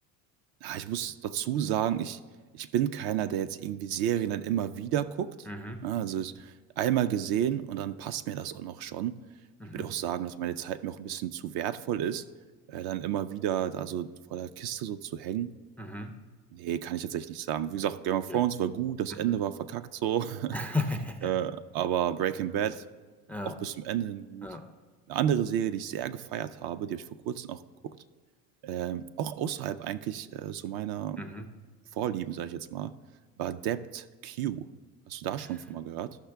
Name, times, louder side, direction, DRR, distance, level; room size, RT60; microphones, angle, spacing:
voice 1, 0.6-2.2 2.5-5.5 5.8-9.2 9.7-12.2 12.7-15.5 16.5-20.5 21.2-22.9 23.4-24.5 25.1-28.0 28.6-31.2 31.9-32.9 33.4-34.7 35.1-36.2, right 10 dB, 55° right, 13 dB, 0.5 m, -31 dB
voice 2, 5.5-5.9 9.6-9.9 15.8-16.2 18.3-18.4 19.1-19.4 20.5-21.3 23.3-23.6 24.4-24.7 31.2-31.5 35.4-35.6, left 2 dB, 5° left, 7 dB, 0.3 m, -35 dB
13.5 x 5.7 x 3.4 m, 1.4 s
supercardioid pair, 95°, 46 cm